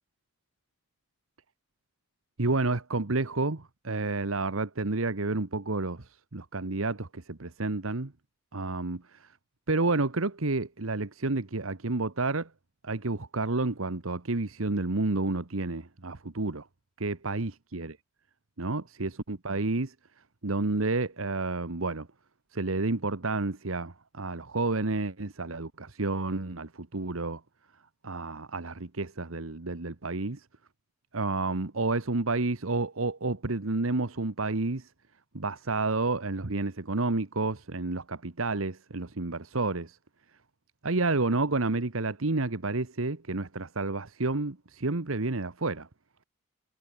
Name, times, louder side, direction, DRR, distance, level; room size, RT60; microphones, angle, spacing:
voice 1, 2.4-8.1 8.5-9.3 9.7-12.5 12.8-16.6 17.0-18.0 18.6-19.9 20.4-22.1 22.5-27.4 28.0-30.4 31.1-34.9 35.3-40.0 40.8-45.9, right 3 dB, 80° right, 1.4 m, -30 dB
head